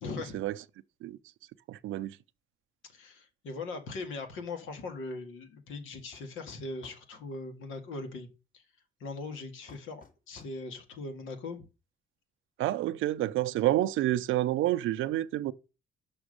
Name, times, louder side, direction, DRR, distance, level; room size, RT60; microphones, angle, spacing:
voice 1, 0.0-0.4 2.9-8.3 8.5-8.6 9.0-11.7, left 3 dB, 85° left, 2.0 m, -40 dB
voice 2, 1.7-2.2 12.6-15.5, right 14 dB, 85° right, 0.6 m, -28 dB
sound 1, 6.1-7.1 9.7-10.6, left 3 dB, 45° left, 2.3 m, -54 dB
6.2 x 5.9 x 6.4 m
cardioid pair, 90°, 20 cm